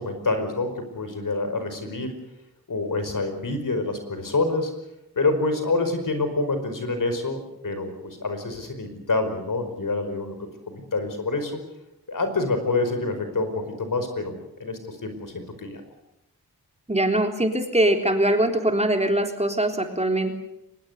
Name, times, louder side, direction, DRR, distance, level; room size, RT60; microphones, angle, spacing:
voice 1, 0.0-2.1 2.7-4.7 5.1-10.3 10.7-11.6 12.1-15.8, left 3 dB, 60° left, 8 dB, 5.1 m, -27 dB
voice 2, 16.9-20.3, right 1 dB, 20° right, 4 dB, 3.7 m, -22 dB
24.0 x 20.0 x 8.2 m, 0.86 s
wide cardioid pair, 70°, 37 cm